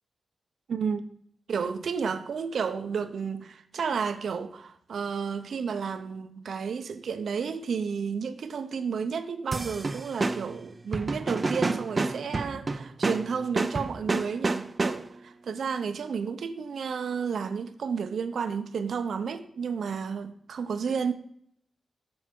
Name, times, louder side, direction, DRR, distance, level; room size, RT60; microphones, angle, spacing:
voice 1, 0.7-1.0 1.5-21.1, right 6 dB, 75° right, 0.6 m, -32 dB
sound 1, 9.5-15.3, right 3 dB, 35° right, 0.4 m, -30 dB
7.6 x 7.0 x 3.7 m
wide cardioid pair, 95°, 0 cm